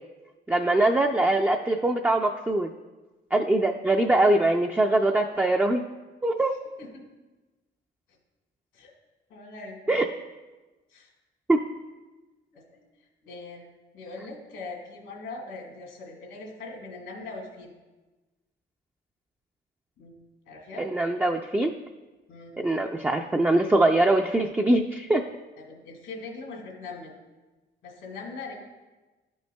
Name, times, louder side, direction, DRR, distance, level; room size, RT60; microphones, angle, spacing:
voice 1, 0.5-2.7 3.3-5.8 6.2-6.5 9.9-10.0 11.5-11.6 20.8-21.7 22.6-25.2, right 2 dB, 10° right, 2 dB, 0.4 m, -22 dB
voice 2, 9.3-10.0 10.9-11.1 12.5-12.8 13.2-13.6 13.9-17.7 20.0-20.2 20.5-20.9 22.3-22.6 25.6-27.1 27.8-28.6, left 3 dB, 85° left, 0 dB, 1.9 m, -41 dB
11.0 x 5.3 x 2.2 m, 1.2 s
cardioid pair, 90°, 20 cm